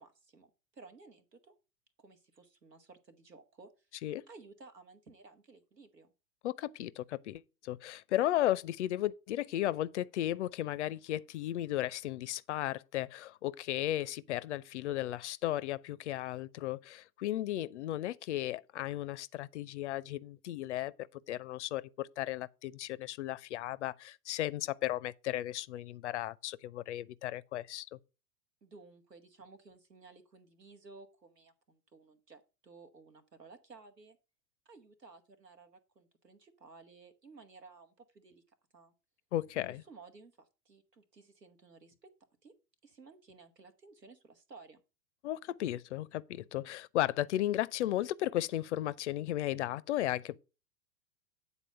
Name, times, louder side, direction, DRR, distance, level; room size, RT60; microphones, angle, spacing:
voice 1, 0.0-1.5 2.0-3.9 4.3-6.1 28.6-34.2 34.6-38.4 38.7-38.9 39.5-42.1 42.4-42.5 42.8-44.8, right 4 dB, 85° right, 1.4 m, -56 dB
voice 2, 6.4-20.9 21.3-28.0 39.3-39.8 45.2-50.4, left 14 dB, 50° left, 0.5 m, -35 dB
8.9 x 4.1 x 6.4 m
figure-of-eight pair, 95°, 47 cm